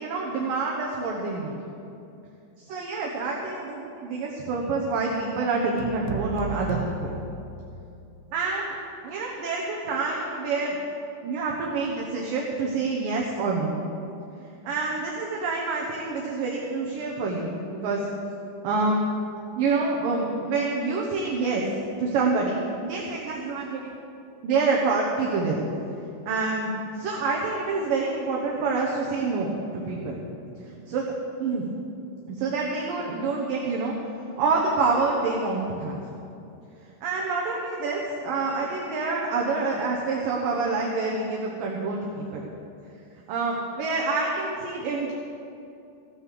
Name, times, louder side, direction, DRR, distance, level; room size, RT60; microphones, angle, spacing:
voice 1, 0.0-1.6 2.6-7.2 8.3-8.8 9.0-10.8 11.2-13.8 14.7-18.1 18.6-19.0 19.6-21.6 22.0-23.8 24.4-25.6 26.3-26.7 27.0-30.2 30.7-31.1 31.4-31.6 32.3-33.9 34.4-36.0 37.0-42.4 43.3-45.1, right 3 dB, 65° right, -2 dB, 2.3 m, -27 dB
sound 1, 5.8-8.1, right 4 dB, 85° right, 3.2 m, -35 dB
16.0 x 9.4 x 6.7 m, 2.7 s
omnidirectional pair, 5.2 m